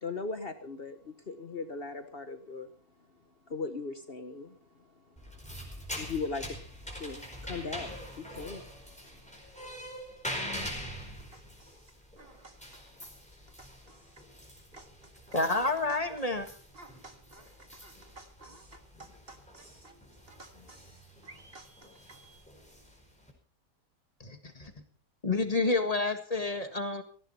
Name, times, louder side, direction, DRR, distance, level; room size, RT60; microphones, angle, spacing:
voice 1, 0.0-2.7 3.5-9.0, left 4 dB, 45° left, 1.2 m, -39 dB
sound 1, 5.2-23.3, equal, 5° left, 4.9 m, -44 dB
voice 2, 11.3-11.8 12.2-13.2 13.6-14.3 14.7-15.2 15.9-16.0 16.7-20.0 20.3-22.5, right 2 dB, 40° right, 1.8 m, -54 dB
voice 3, 15.3-16.5 24.2-24.7 25.2-27.0, left 3 dB, 25° left, 1.8 m, -29 dB
18.0 x 16.0 x 4.3 m
omnidirectional pair, 1.5 m